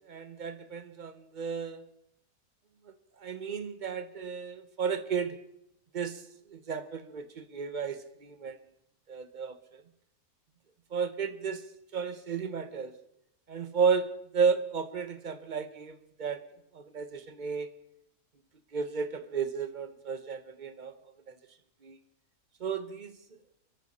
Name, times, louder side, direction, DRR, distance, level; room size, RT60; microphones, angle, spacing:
voice 1, 0.1-1.8 3.2-5.4 5.9-6.2 6.5-8.6 9.1-9.5 10.9-11.6 11.9-12.9 13.5-16.4 16.7-17.7 18.7-20.9 21.3-21.4 21.8-22.0 22.6-23.1, right 6 dB, 35° right, 10 dB, 0.9 m, -33 dB
23.0 x 13.5 x 4.2 m, 0.79 s
omnidirectional pair, 1.6 m